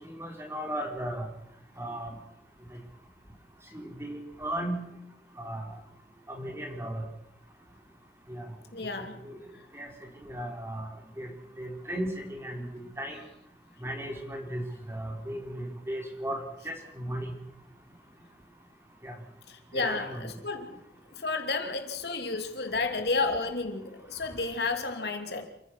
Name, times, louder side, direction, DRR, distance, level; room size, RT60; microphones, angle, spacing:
voice 1, 0.2-1.3 1.8-2.1 3.7-4.8 5.4-5.7 6.3-7.0 8.3-8.5 8.8-8.9 9.2-9.4 9.7-9.9 10.3-10.9 11.2-11.3 11.6-13.2 13.8-14.6 14.9-16.4 16.6-17.3 19.0-19.1 19.7-20.2, right 1 dB, 15° right, 4.5 m, -35 dB
voice 2, 8.7-9.2 19.5-20.8 21.1-25.5, left 3 dB, 70° left, 2.8 m, -31 dB
28.5 x 16.0 x 6.3 m
head